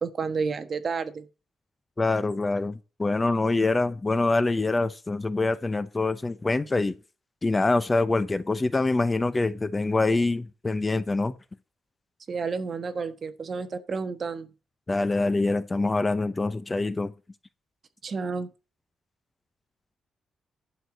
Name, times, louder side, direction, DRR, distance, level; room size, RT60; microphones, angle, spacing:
voice 1, 0.0-1.3 12.3-14.5 18.0-18.5, right 5 dB, 40° right, 1.3 m, -31 dB
voice 2, 2.0-7.0 7.4-11.3 14.9-17.1, left 3 dB, 20° left, 0.7 m, -25 dB
11.5 x 4.8 x 6.9 m
cardioid pair, 130°, 0 cm